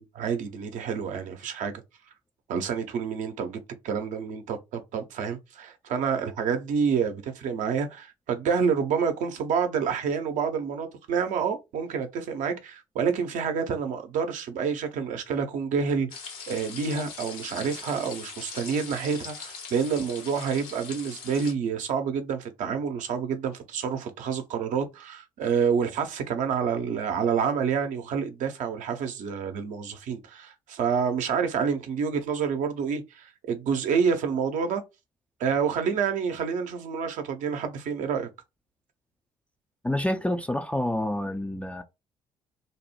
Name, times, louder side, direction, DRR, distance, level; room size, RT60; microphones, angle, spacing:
voice 1, 0.0-1.8 2.5-34.8 35.4-38.3, right 6 dB, 55° right, 0.6 m, -28 dB
sound 1, 16.1-21.5, left 5 dB, 65° left, 0.8 m, -41 dB
voice 2, 39.8-41.8, left 1 dB, 10° left, 0.3 m, -28 dB
2.6 x 2.0 x 3.0 m
figure-of-eight pair, 45°, 16 cm